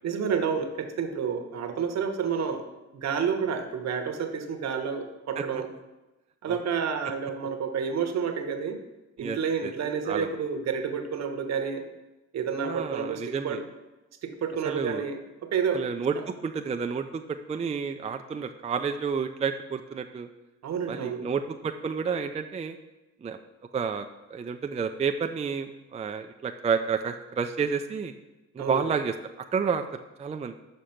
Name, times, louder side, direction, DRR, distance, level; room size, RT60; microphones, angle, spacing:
voice 1, 0.0-2.7 2.9-5.7 6.4-8.8 9.2-11.8 12.3-13.7 14.2-15.9 16.1-16.3 20.6-21.3 28.6-28.9, right 6 dB, 60° right, 6 dB, 1.1 m, -30 dB
voice 2, 9.2-9.7 10.1-10.3 12.6-13.6 14.6-15.0 15.7-17.2 17.5-20.3 20.9-22.8 23.2-23.4 23.7-24.1 24.3-28.1 28.5-29.1 29.5-30.5, right 6 dB, 20° right, 6 dB, 0.4 m, -30 dB
6.6 x 5.1 x 5.8 m, 1.0 s
cardioid pair, 90°, 30 cm